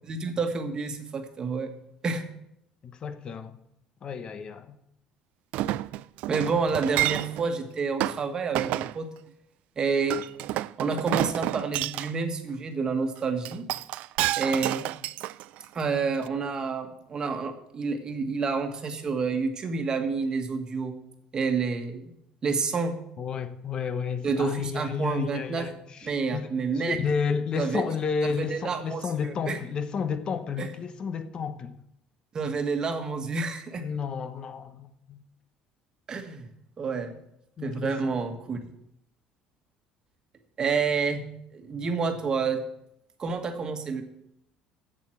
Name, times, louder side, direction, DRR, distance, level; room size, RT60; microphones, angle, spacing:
voice 1, 0.0-1.7 2.0-2.2 6.3-9.1 9.8-10.2 10.8-13.7 14.4-14.9 15.7-20.9 21.3-22.0 22.4-23.0 24.2-25.7 26.0-27.0 27.5-27.8 28.3-29.6 30.6-30.7 32.3-33.8 36.1-36.5 36.8-37.1 37.6-38.7 40.6-41.2 41.5-42.6 43.2-44.0, right 4 dB, 35° right, 1.5 m, -29 dB
voice 2, 2.8-3.5 4.0-4.8 23.2-31.7 33.8-35.2 37.6-38.2, left 6 dB, 40° left, 1.0 m, -31 dB
Chink clink, 5.5-7.5 8.0-8.2 8.5-8.9 10.1-12.1 13.4-15.8 16.3-16.4, right 16 dB, 70° right, 0.3 m, -29 dB
7.8 x 7.6 x 7.6 m
cardioid pair, 120°, 2 cm